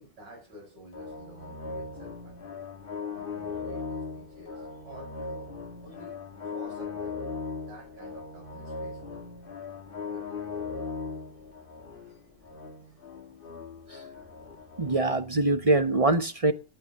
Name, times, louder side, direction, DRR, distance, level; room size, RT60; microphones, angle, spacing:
voice 1, 0.0-2.6 3.1-5.5 5.8-7.3 7.7-9.3 10.1-10.6 11.9-12.3 14.1-14.4 14.8-14.9, right 1 dB, 75° right, 6.6 m, -50 dB
sound 1, 0.9-15.0, left 4 dB, 30° left, 1.4 m, -38 dB
voice 2, 14.8-16.5, right 2 dB, 35° right, 0.6 m, -24 dB
15.0 x 10.0 x 6.3 m
omnidirectional pair, 1.9 m